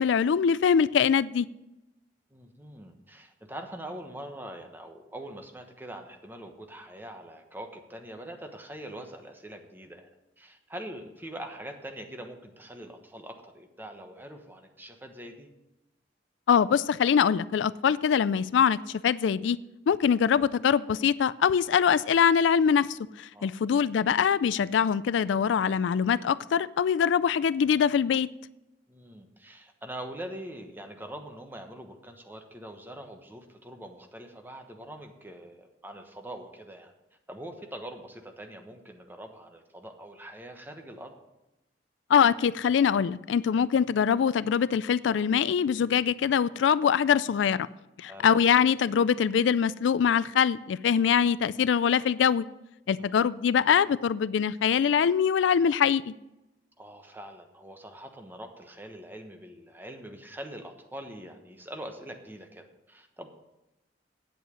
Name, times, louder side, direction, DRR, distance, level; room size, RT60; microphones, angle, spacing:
voice 1, 0.0-1.5 16.5-19.6 19.9-28.3 42.1-47.7 48.0-52.5 52.9-56.1, left 7 dB, 80° left, 18 dB, 0.3 m, -23 dB
voice 2, 2.3-10.1 10.4-15.5 23.3-23.5 28.9-36.9 37.3-41.1 48.0-48.3 52.9-53.2 56.8-63.3, right 1 dB, 10° right, 4 dB, 1.2 m, -43 dB
9.1 x 8.0 x 6.4 m, 0.94 s
head